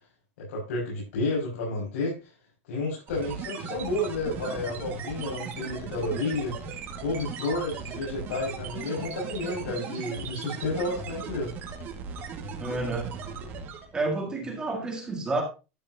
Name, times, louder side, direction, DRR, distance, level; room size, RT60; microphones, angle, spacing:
voice 1, 0.4-2.2 2.7-6.6 7.0-11.5, left 2 dB, 75° left, 5.8 m, -31 dB
sound 1, 3.1-14.0, right 5 dB, 25° right, 1.9 m, -38 dB
voice 2, 12.5-13.2 13.9-15.4, right 3 dB, 10° right, 1.9 m, -30 dB
12.5 x 8.4 x 2.8 m
supercardioid pair, 175°, 7 cm